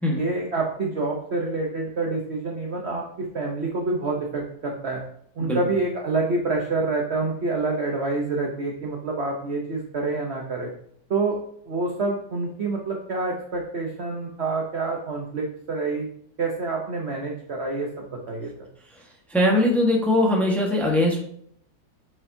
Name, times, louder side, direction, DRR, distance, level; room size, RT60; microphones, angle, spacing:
voice 1, 0.1-5.0 5.4-10.7 11.1-11.4 11.7-16.1 16.4-18.7, right 3 dB, 50° right, 0 dB, 0.9 m, -27 dB
voice 2, 19.3-21.2, left 1 dB, ahead, -1 dB, 1.1 m, -21 dB
8.3 x 5.4 x 2.7 m, 0.66 s
omnidirectional pair, 2.0 m